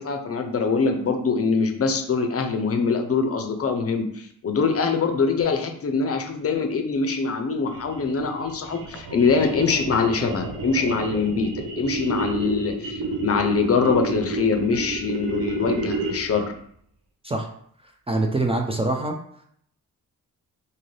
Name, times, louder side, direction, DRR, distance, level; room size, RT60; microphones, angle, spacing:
voice 1, 0.0-11.5 11.8-16.5, left 4 dB, 45° left, 5 dB, 0.5 m, -23 dB
sound 1, 7.7-16.4, right 2 dB, 85° right, 0.8 m, -30 dB
voice 2, 18.1-19.1, right 2 dB, 20° right, 2 dB, 0.4 m, -24 dB
2.6 x 2.5 x 3.2 m, 0.64 s
cardioid pair, 70°, 33 cm